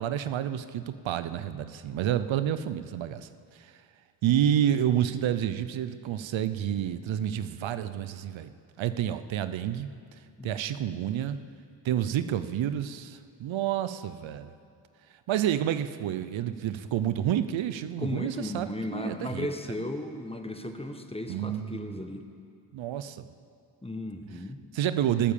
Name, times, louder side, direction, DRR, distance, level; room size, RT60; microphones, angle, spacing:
voice 1, 0.0-3.8 4.2-8.5 8.8-9.9 10.4-11.4 11.8-14.5 15.3-19.5 21.3-22.0 22.7-23.3 24.7-25.3, right 10 dB, 80° right, 12 dB, 0.7 m, -29 dB
voice 2, 18.0-22.2 23.8-24.6, left 1 dB, 10° left, 6 dB, 1.5 m, -35 dB
20.0 x 7.3 x 7.1 m, 2.4 s
supercardioid pair, 55°, 46 cm